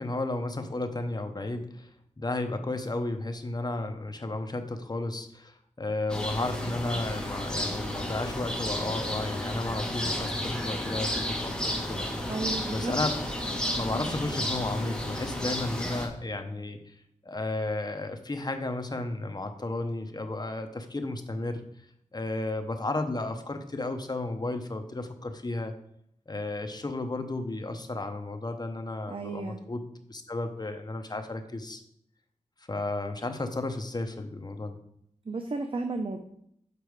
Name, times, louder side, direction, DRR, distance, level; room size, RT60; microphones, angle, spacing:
voice 1, 0.0-1.9 2.2-12.1 12.7-13.2 13.7-17.0 17.2-21.6 22.1-25.7 26.3-29.8 30.1-31.8 32.7-34.8, left 2 dB, 30° left, 6 dB, 0.8 m, -33 dB
sound 1, 6.1-16.1, left 1 dB, 5° left, 1.2 m, -32 dB
voice 2, 12.3-12.9 29.1-29.6 35.3-36.2, right 3 dB, 45° right, 6 dB, 0.6 m, -33 dB
6.8 x 4.6 x 4.7 m, 0.72 s
wide cardioid pair, 80°, 13 cm